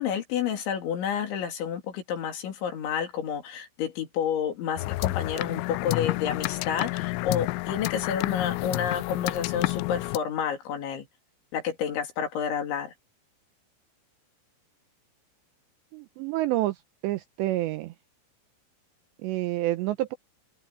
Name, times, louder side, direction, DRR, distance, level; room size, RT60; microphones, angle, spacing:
voice 1, 0.0-11.1 11.5-12.9, left 8 dB, 65° left, 5.2 m, -30 dB
sound 1, 4.8-10.2, left 22 dB, 85° left, 2.7 m, -29 dB
voice 2, 15.9-16.8 17.0-17.9 19.2-20.2, right 16 dB, 85° right, 2.6 m, -28 dB
open air
omnidirectional pair, 5.8 m